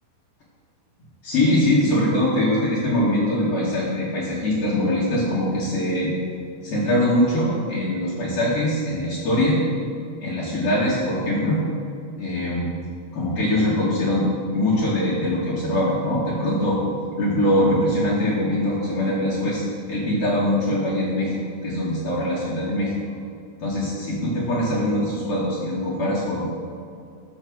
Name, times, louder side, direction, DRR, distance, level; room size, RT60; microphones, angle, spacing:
voice 1, 1.2-6.1 6.6-9.6 10.2-11.6 12.2-12.7 13.1-16.8 17.2-19.6 19.9-23.0 23.6-26.6, left 1 dB, 55° left, -8 dB, 1.7 m, -22 dB
14.0 x 4.8 x 6.3 m, 2.4 s
omnidirectional pair, 5.2 m